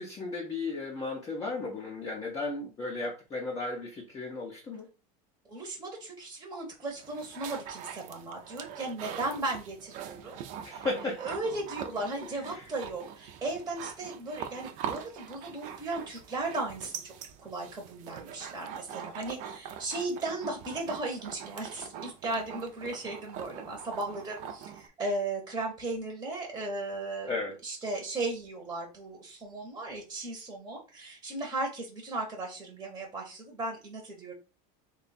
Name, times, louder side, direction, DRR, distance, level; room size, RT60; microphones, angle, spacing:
voice 1, 0.0-4.9 10.6-11.3 12.2-12.7 27.3-27.5, left 3 dB, 20° left, -1 dB, 0.6 m, -35 dB
voice 2, 5.5-10.4 10.7-10.8 11.2-17.1 17.4-27.4 27.6-34.3, right 2 dB, 15° right, 1 dB, 0.8 m, -36 dB
sound 1, 6.8-24.9, right 8 dB, 50° right, 0.5 m, -43 dB
3.4 x 2.3 x 4.0 m, 0.32 s
supercardioid pair, 160°, 18 cm